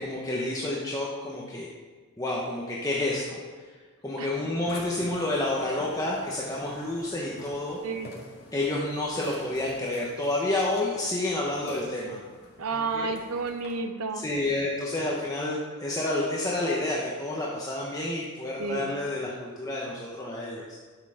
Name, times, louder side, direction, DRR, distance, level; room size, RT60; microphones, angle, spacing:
voice 1, 0.0-1.7 2.2-3.4 4.0-7.8 8.5-12.2 12.7-13.1 14.1-20.7, left 2 dB, 15° left, -5 dB, 1.1 m, -29 dB
Burping eructation, 4.7-13.7, left 1 dB, 45° left, 2.3 m, -46 dB
voice 2, 12.6-14.2 18.6-18.8, right 4 dB, 75° right, 7 dB, 0.8 m, -31 dB
11.0 x 6.7 x 5.0 m, 1.5 s
head